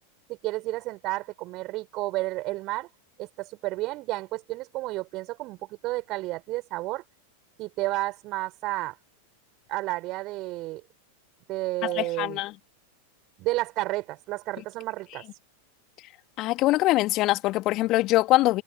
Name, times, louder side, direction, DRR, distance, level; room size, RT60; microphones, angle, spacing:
voice 1, 0.3-2.9 3.2-7.0 7.6-9.0 9.7-10.8 11.5-12.4 13.4-15.3, right 19 dB, 40° right, 5.8 m, -31 dB
voice 2, 11.8-12.5 16.4-18.6, left 18 dB, 40° left, 2.6 m, -23 dB
figure-of-eight pair, 90°, 0 cm